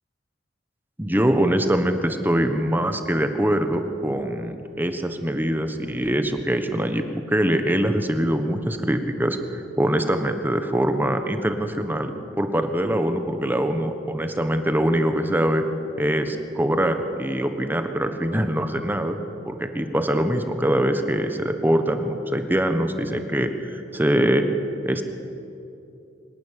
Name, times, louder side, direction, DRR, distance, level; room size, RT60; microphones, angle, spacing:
voice 1, 1.0-12.1 12.4-15.6 16.0-19.2 19.4-24.5 24.8-25.0, right 1 dB, 10° right, 7 dB, 1.2 m, -23 dB
25.0 x 12.0 x 10.0 m, 2.7 s
head